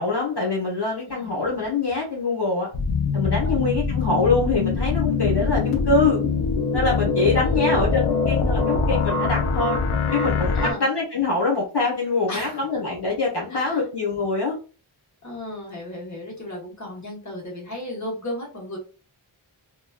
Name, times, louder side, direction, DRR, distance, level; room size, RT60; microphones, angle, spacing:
voice 1, 0.0-2.7 3.1-6.2 6.7-9.8 10.1-14.6, left 3 dB, 55° left, -3 dB, 1.1 m, -24 dB
sound 1, 2.7-10.7, left 4 dB, 85° left, 0.7 m, -23 dB
voice 2, 7.2-8.2 10.5-10.8 12.3-12.8 13.5-13.8 15.2-18.8, left 1 dB, 35° left, -2 dB, 1.2 m, -35 dB
2.9 x 2.3 x 2.2 m, 0.36 s
wide cardioid pair, 40°, 49 cm